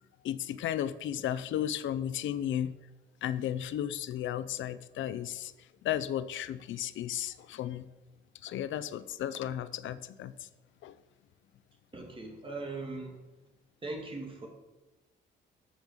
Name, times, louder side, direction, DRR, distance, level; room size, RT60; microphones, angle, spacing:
voice 1, 0.2-2.7 3.2-5.5 5.8-7.9 8.4-10.3 10.8-10.9, left 11 dB, 75° left, 16 dB, 0.7 m, -34 dB
voice 2, 11.9-13.2 13.8-14.5, right 3 dB, 25° right, 0 dB, 2.5 m, -39 dB
13.5 x 5.3 x 7.3 m, 1.1 s
cardioid pair, 90°, 20 cm